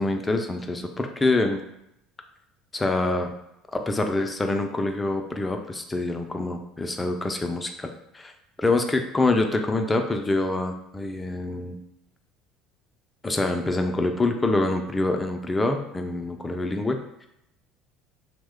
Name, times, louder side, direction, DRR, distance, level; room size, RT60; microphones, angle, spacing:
voice 1, 0.0-1.6 2.7-3.3 3.7-8.3 8.6-11.8 13.2-17.3, left 2 dB, 20° left, 5 dB, 0.4 m, -26 dB
2.9 x 2.1 x 3.5 m, 0.80 s
hypercardioid pair, 70°, 0 cm